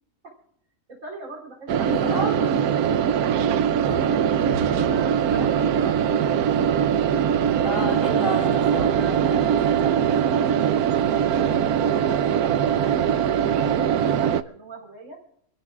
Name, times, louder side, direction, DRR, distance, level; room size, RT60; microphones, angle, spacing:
voice 1, 0.9-2.3 11.1-15.2, right 3 dB, 50° right, 4.5 m, -42 dB
sound 1, 1.7-14.4, right 8 dB, 70° right, 1.2 m, -21 dB
voice 2, 1.9-2.5 7.6-9.6, left 2 dB, 50° left, 2.1 m, -31 dB
sound 2, 3.9-5.8 6.5-6.9, right 2 dB, 90° right, 5.6 m, -36 dB
28.0 x 15.5 x 2.4 m
omnidirectional pair, 1.7 m